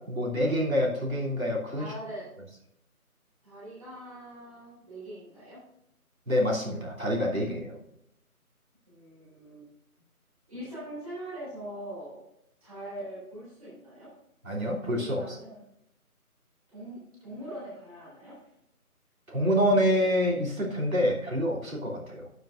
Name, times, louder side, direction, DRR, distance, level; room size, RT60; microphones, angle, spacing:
voice 1, 0.1-1.9 6.3-7.7 14.4-15.2 19.3-22.3, equal, 65° right, -3 dB, 3.0 m, -27 dB
voice 2, 1.8-2.3 3.4-5.6 8.9-9.7 10.5-12.3 12.6-14.1 14.9-15.7 16.7-18.4, right 1 dB, 25° right, -8 dB, 3.7 m, -42 dB
12.0 x 8.1 x 2.5 m, 0.81 s
figure-of-eight pair, 165°, 45 cm